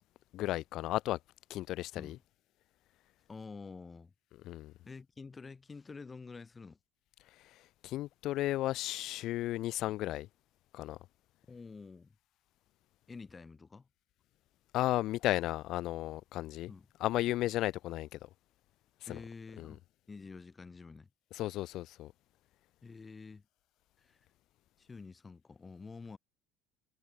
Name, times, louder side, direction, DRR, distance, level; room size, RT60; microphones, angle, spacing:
voice 1, 0.3-1.2 1.5-2.2 4.4-4.7 7.8-10.3 10.7-11.0 14.7-16.7 17.0-18.2 19.1-19.2 19.6-19.7 21.3-22.1, left 15 dB, 65° left, 0.8 m, -34 dB
voice 2, 3.3-4.1 4.8-6.8 11.5-12.2 13.1-13.9 16.7-16.9 19.1-19.8 20.1-21.1 22.8-23.5 24.0-24.2 24.8-26.2, left 4 dB, 25° left, 3.1 m, -48 dB
supercardioid pair, 85°, 0 cm